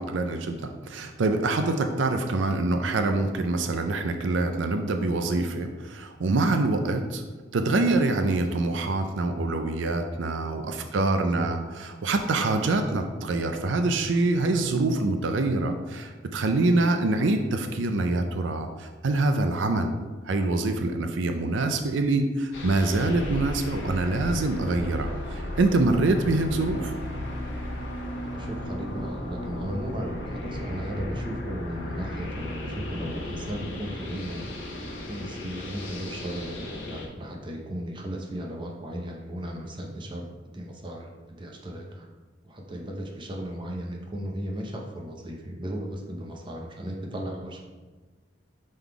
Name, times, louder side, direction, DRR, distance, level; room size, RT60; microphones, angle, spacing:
voice 1, 0.0-7.2 7.5-20.0 20.3-26.9, right 2 dB, 75° right, 6 dB, 0.5 m, -25 dB
voice 2, 10.8-11.5 28.3-40.3 40.5-42.1 42.4-47.6, equal, 25° right, 1 dB, 0.7 m, -36 dB
sound 1, 22.5-37.1, left 1 dB, 85° left, 1.2 m, -35 dB
5.4 x 3.9 x 4.6 m, 1.3 s
head